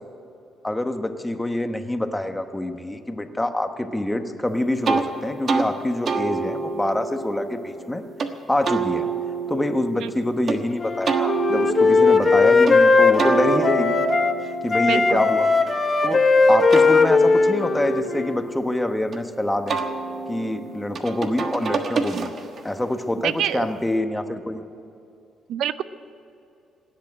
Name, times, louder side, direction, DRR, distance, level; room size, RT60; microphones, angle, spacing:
voice 1, 0.6-8.0 8.5-9.1 9.5-14.0 14.6-15.5 16.0-16.2 16.5-19.8 20.3-22.3 22.6-24.6, left 1 dB, 10° left, 7 dB, 1.1 m, -25 dB
sound 1, 4.8-5.1 5.5-5.7 6.1-8.3 8.6-10.6 11.1-12.8 13.2-16.1 16.5-19.2 19.7-22.7, right 5 dB, 50° right, 1.3 m, -28 dB
Wind instrument woodwind instrument, 10.8-14.4 14.7-18.5, left 4 dB, 35° left, 1.3 m, -18 dB
voice 2, 14.9-15.3 23.2-23.7 25.5-25.8, right 10 dB, 80° right, 14 dB, 0.6 m, -26 dB
17.0 x 8.4 x 9.7 m, 2.7 s
cardioid pair, 90°, 0 cm